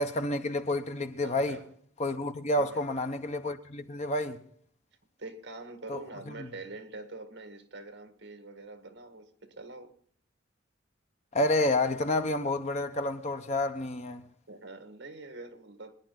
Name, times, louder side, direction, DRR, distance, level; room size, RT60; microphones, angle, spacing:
voice 1, 0.0-1.6 2.0-4.4 5.9-6.0 6.3-6.5 11.3-14.2, left 1 dB, 35° left, 1.1 m, -29 dB
voice 2, 1.2-1.6 2.6-3.0 5.2-9.9 14.5-15.9, right 2 dB, 60° right, 2.0 m, -45 dB
25.5 x 10.5 x 4.1 m
head